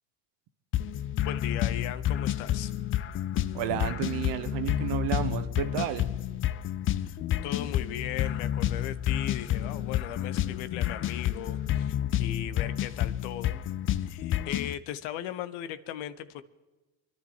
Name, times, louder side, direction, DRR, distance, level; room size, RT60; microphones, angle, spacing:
sound 1, 0.7-14.7, left 12 dB, 30° left, 0.3 m, -30 dB
voice 1, 1.2-2.7 7.0-13.6 14.1-16.4, left 11 dB, 70° left, 13 dB, 1.0 m, -38 dB
voice 2, 3.5-6.1, right 11 dB, 60° right, 9 dB, 1.3 m, -31 dB
28.0 x 10.5 x 3.2 m, 1.2 s
supercardioid pair, 95°, 49 cm